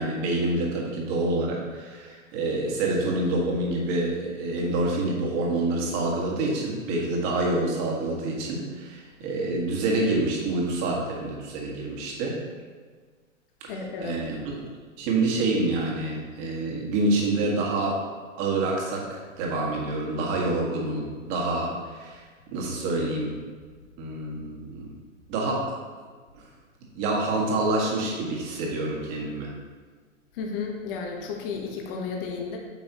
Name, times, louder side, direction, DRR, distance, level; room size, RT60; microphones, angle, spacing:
voice 1, 0.0-12.4 13.6-13.7 14.0-14.4 15.0-18.0 18.4-22.2 22.5-23.4 24.0-24.9 25.3-25.8 26.4-26.5 26.9-29.5, right 2 dB, 35° right, -2 dB, 1.9 m, -27 dB
voice 2, 13.7-14.2 30.3-32.6, left 5 dB, 45° left, 0 dB, 1.2 m, -33 dB
8.8 x 5.5 x 3.0 m, 1.5 s
hypercardioid pair, 120°, 39 cm